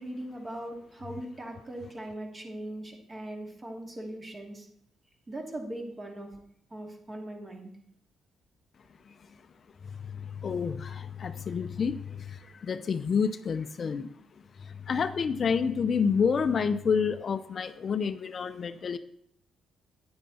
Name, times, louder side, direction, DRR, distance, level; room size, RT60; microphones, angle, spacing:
voice 1, 0.0-4.7 5.3-6.3 6.7-7.7, right 1 dB, 30° right, 2 dB, 2.6 m, -40 dB
voice 2, 10.4-12.0 12.7-14.1 14.9-19.0, left 6 dB, 45° left, 12 dB, 0.5 m, -28 dB
9.7 x 9.2 x 4.2 m, 0.71 s
cardioid pair, 90°, 0 cm